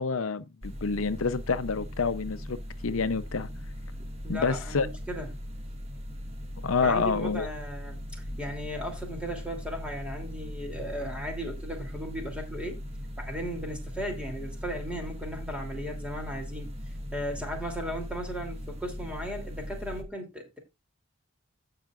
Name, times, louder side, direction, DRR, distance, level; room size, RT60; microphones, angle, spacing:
voice 1, 0.0-2.6 2.8-3.5 4.3-4.9 6.6-7.5, left 4 dB, 75° left, 0.7 m, -28 dB
sound 1, 0.6-20.0, equal, 30° right, 1.5 m, -39 dB
voice 2, 4.2-5.3 6.8-12.8 13.2-16.7 17.1-20.6, equal, 5° right, 2.9 m, -36 dB
16.5 x 5.7 x 2.4 m
head